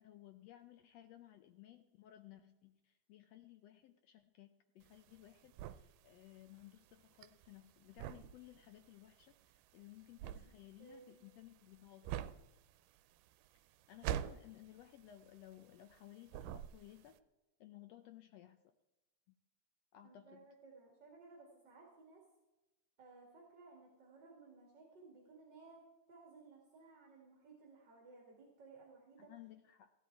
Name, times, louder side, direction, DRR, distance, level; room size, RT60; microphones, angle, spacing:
voice 1, 0.0-4.5 4.7-12.2 13.9-17.2 17.6-18.6 19.3-19.4 19.9-20.5 29.2-29.9, left 13 dB, 85° left, 8 dB, 1.4 m, -58 dB
sound 1, 4.8-16.0 16.3-17.1, right 11 dB, 85° right, 2.1 m, -45 dB
voice 2, 10.8-11.4 20.0-22.2 23.0-25.8 26.1-29.3, right 3 dB, 40° right, -1 dB, 2.3 m, -59 dB
16.5 x 10.0 x 4.6 m, 1.0 s
omnidirectional pair, 3.7 m